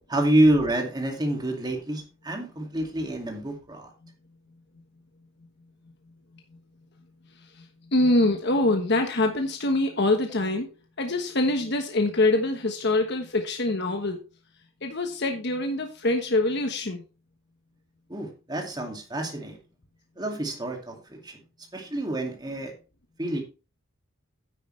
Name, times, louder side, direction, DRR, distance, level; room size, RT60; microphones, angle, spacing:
voice 1, 0.0-3.9 18.1-19.6 20.2-21.4 21.7-22.7 23.2-23.4, right 1 dB, 20° right, 2 dB, 2.3 m, -27 dB
voice 2, 7.9-10.7 11.0-14.2 14.8-17.0, left 2 dB, 55° left, 4 dB, 1.2 m, -24 dB
10.0 x 9.0 x 3.3 m, 0.32 s
head